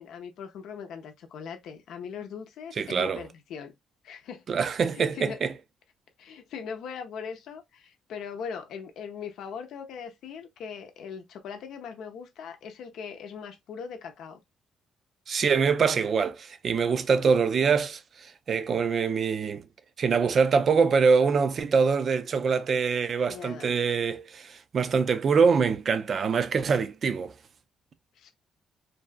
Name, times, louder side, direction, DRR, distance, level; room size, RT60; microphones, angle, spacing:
voice 1, 0.0-3.8 4.0-4.4 4.9-5.4 6.2-14.4 23.3-23.7 28.2-28.3, left 6 dB, 80° left, 0.6 m, -40 dB
voice 2, 2.8-3.2 4.5-5.5 15.3-19.6 20.0-27.3, right 5 dB, 50° right, 0.4 m, -24 dB
2.6 x 2.3 x 2.3 m
cardioid pair, 90°, 0 cm